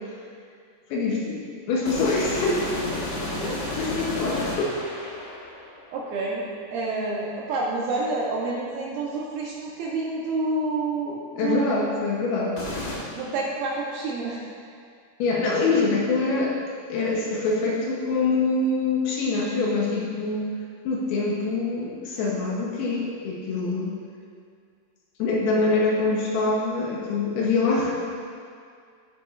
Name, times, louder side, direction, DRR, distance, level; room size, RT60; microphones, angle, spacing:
voice 1, 0.9-2.8 3.8-4.8 11.4-12.6 15.2-16.6 16.9-20.5 20.9-24.0 25.2-27.9, left 3 dB, 75° left, -3 dB, 2.5 m, -24 dB
sound 1, 1.9-5.9 12.6-13.0, left 2 dB, 60° left, 1.9 m, -32 dB
voice 2, 3.4-3.7 5.9-6.4 6.7-11.9 13.1-14.4, right 3 dB, 75° right, -4 dB, 2.3 m, -28 dB
14.5 x 5.9 x 2.4 m, 2.2 s
omnidirectional pair, 5.0 m